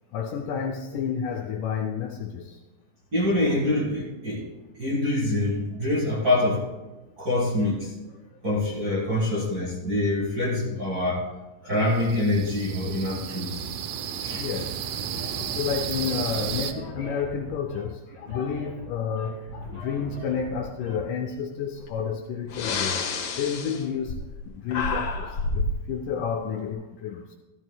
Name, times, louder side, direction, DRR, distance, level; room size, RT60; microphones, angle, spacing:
voice 1, 0.1-2.6 10.5-10.8 14.4-14.8 15.0-15.2 15.5-23.1 23.4-24.2 24.5-27.4, left 7 dB, 80° left, 1.9 m, -30 dB
voice 2, 3.1-4.5 4.8-6.6 7.2-7.9 8.4-11.2 11.6-13.7 14.2-14.4, left 1 dB, 35° right, 1.6 m, -25 dB
sound 1, 11.9-16.7, right 9 dB, 75° right, 1.8 m, -33 dB
sound 2, 15.0-21.0, equal, 50° right, 5.1 m, -41 dB
Breathing, 21.8-22.0 22.5-24.4 24.7-25.8, left 4 dB, 60° left, 2.4 m, -29 dB
14.5 x 14.0 x 2.3 m
omnidirectional pair, 4.1 m